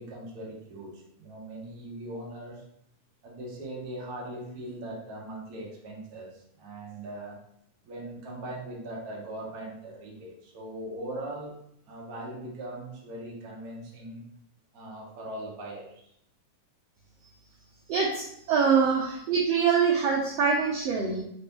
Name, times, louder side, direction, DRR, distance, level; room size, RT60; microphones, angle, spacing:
voice 1, 0.0-2.6 3.2-7.4 7.8-11.5 11.9-14.2 14.7-16.1 18.7-19.1, right 1 dB, 65° right, -4 dB, 0.9 m, -40 dB
voice 2, 17.9-21.2, right 6 dB, 85° right, -2 dB, 1.4 m, -24 dB
5.0 x 2.8 x 3.5 m, 0.72 s
omnidirectional pair, 3.5 m